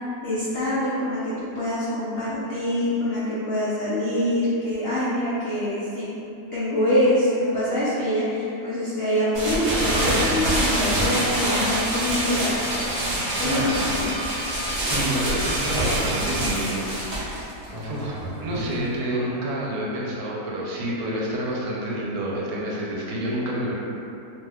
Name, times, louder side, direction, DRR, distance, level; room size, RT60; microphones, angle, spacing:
voice 1, 0.2-6.1 6.5-12.5 13.4-14.1, left 1 dB, 90° left, -9 dB, 0.5 m, -25 dB
sound 1, 9.3-18.9, right 1 dB, 40° right, 0.4 m, -26 dB
sound 2, 9.8-16.9, right 1 dB, 55° right, 0.8 m, -35 dB
voice 2, 13.4-13.7 14.3-17.5 17.8-23.7, right 1 dB, 80° right, -5 dB, 1.1 m, -29 dB
2.7 x 2.2 x 3.3 m, 2.8 s
omnidirectional pair, 1.7 m